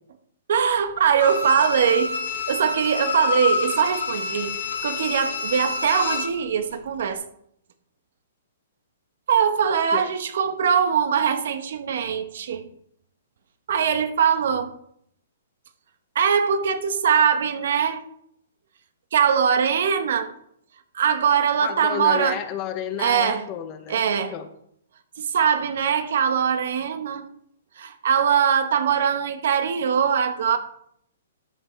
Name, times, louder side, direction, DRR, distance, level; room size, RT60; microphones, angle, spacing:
voice 1, 0.5-2.1 2.5-7.2 9.3-12.7 13.7-14.7 16.1-18.0 19.1-20.3 20.9-22.4 23.0-23.4 23.9-24.3 25.2-27.2 27.8-30.6, right 7 dB, 65° right, 9 dB, 1.3 m, -22 dB
Bowed string instrument, 1.2-6.4 6.7-6.8, left 4 dB, 85° left, 3.8 m, -28 dB
voice 2, 21.6-24.0 24.3-24.5, left 10 dB, 25° left, 9 dB, 0.7 m, -31 dB
12.5 x 6.4 x 3.4 m, 0.71 s
hypercardioid pair, 160°, 0 cm